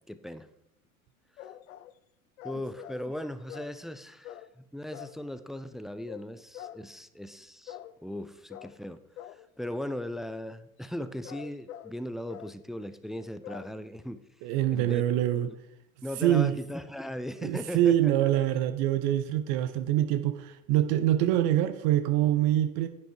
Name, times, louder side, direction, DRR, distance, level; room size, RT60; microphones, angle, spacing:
voice 1, 0.1-0.5 1.4-1.5 2.4-14.2 14.7-15.0 15.3-15.6 16.0-18.3, left 1 dB, ahead, 0.4 m, -38 dB
sound 1, 1.4-2.0 2.4-3.1 3.5-3.8 4.2-4.5 4.9-5.2 6.1-6.3 6.5-6.8 7.7-8.0 8.5-8.8 9.2-9.5 11.0-12.0 12.3-12.6 13.4-13.7, left 11 dB, 65° left, 0.7 m, -44 dB
voice 2, 14.4-15.5 16.2-16.5 17.4-22.9, right 12 dB, 45° right, 0.9 m, -25 dB
10.5 x 9.3 x 4.6 m
figure-of-eight pair, 80°, 43 cm